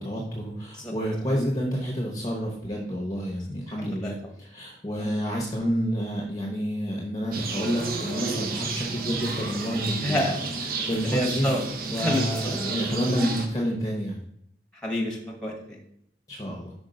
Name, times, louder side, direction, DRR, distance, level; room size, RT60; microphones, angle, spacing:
voice 1, 0.0-10.3 10.6-11.5 11.9-14.2 16.3-16.7, equal, 20° left, -1 dB, 0.9 m, -29 dB
voice 2, 3.8-4.1 5.0-5.1 10.0-10.4 10.7-11.6 12.0-12.5 14.8-15.8, left 1 dB, 5° left, 0 dB, 1.3 m, -29 dB
sound 1, 7.3-13.5, right 4 dB, 55° right, 0.9 m, -31 dB
5.2 x 5.1 x 5.1 m, 0.72 s
head